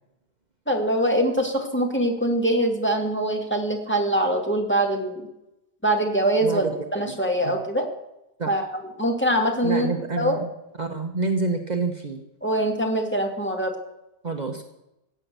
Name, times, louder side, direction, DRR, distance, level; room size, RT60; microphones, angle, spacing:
voice 1, 0.7-5.3 5.8-7.9 8.5-9.9 10.2-10.4 12.4-13.7, right 1 dB, 10° left, 2 dB, 2.1 m, -23 dB
voice 2, 6.4-6.7 7.1-7.2 7.4-7.5 8.4-8.6 9.6-10.5 10.8-12.2 14.2-14.6, right 3 dB, 40° right, 4 dB, 1.2 m, -27 dB
16.0 x 9.1 x 6.8 m, 0.89 s
omnidirectional pair, 1.1 m